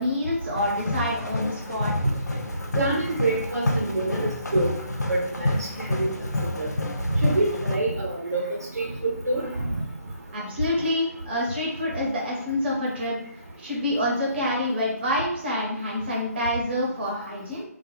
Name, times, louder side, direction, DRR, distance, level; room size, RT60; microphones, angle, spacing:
voice 1, 0.0-1.9 10.3-13.2 13.6-17.6, left 1 dB, 40° right, -3 dB, 0.8 m, -27 dB
sound 1, 0.6-7.8, left 1 dB, 85° left, 0.4 m, -29 dB
voice 2, 2.7-4.7 5.1-5.5 5.8-6.1 6.6-6.7 7.1-8.4 8.8-9.7, right 2 dB, 75° right, -1 dB, 0.6 m, -26 dB
2.3 x 2.2 x 3.0 m, 0.70 s
figure-of-eight pair, 145°, 9 cm